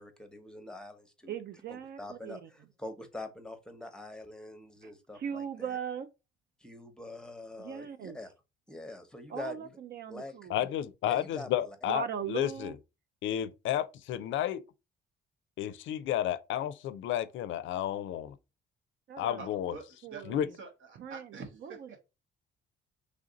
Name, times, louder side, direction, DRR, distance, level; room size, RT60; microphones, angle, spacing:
voice 1, 0.0-1.3 1.7-5.8 6.6-8.3 8.7-9.7 10.1-10.3 11.1-11.8, left 2 dB, 5° left, 0.8 m, -45 dB
voice 2, 1.3-2.5 4.8-6.1 7.6-8.2 9.3-10.6 11.9-12.8 19.1-19.5 20.0-20.5 21.0-21.4 21.6-21.7, right 8 dB, 55° right, 0.4 m, -39 dB
voice 3, 10.5-12.7 13.2-14.6 15.6-18.3 19.2-19.7 20.3-20.5, left 11 dB, 75° left, 0.4 m, -32 dB
voice 4, 19.4-20.2 20.5-22.0, right 4 dB, 80° right, 1.1 m, -46 dB
3.3 x 2.6 x 3.8 m
cardioid pair, 90°, 20 cm